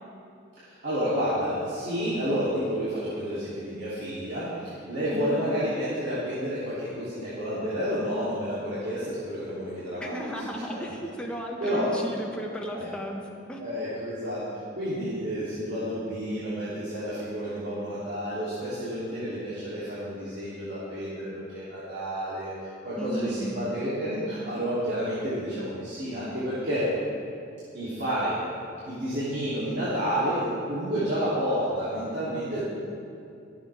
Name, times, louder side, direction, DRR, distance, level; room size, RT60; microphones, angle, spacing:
voice 1, 0.6-10.3 10.7-11.0 11.6-11.9 12.7-12.9 13.6-26.9 27.7-28.4 28.8-32.7, equal, 60° right, -12 dB, 3.2 m, -30 dB
voice 2, 5.1-5.5 10.0-13.2 13.5-13.6 23.0-23.8, equal, 5° left, -1 dB, 1.2 m, -35 dB
24.5 x 8.6 x 3.6 m, 2.5 s
head